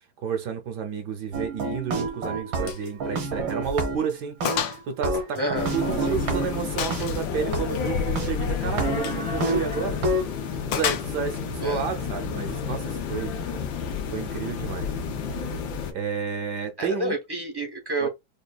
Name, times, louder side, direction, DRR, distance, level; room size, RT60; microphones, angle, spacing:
voice 1, 0.2-5.4 5.7-10.0 10.6-13.3 14.1-14.9 15.4-15.6 15.9-17.2 18.0-18.1, right 6 dB, 70° right, 1.3 m, -31 dB
sound 1, 1.3-4.1 4.4-7.0 7.5-7.6 8.2-8.3 8.7-10.3, right 2 dB, 90° right, 1.9 m, -28 dB
Gunshot gunfire, 2.6-2.9 3.2-3.3 3.8-3.9 4.4-4.8 5.1-6.1 6.8-7.3 8.9-9.2 10.7-11.4, left 9 dB, 70° left, 0.9 m, -30 dB
voice 2, 5.3-5.7 6.1-6.2 11.6-11.8 16.8-18.1, right 1 dB, 20° right, 0.7 m, -29 dB
sound 2, 5.6-15.9, left 6 dB, 90° left, 1.5 m, -30 dB
5.2 x 2.3 x 2.3 m
omnidirectional pair, 2.0 m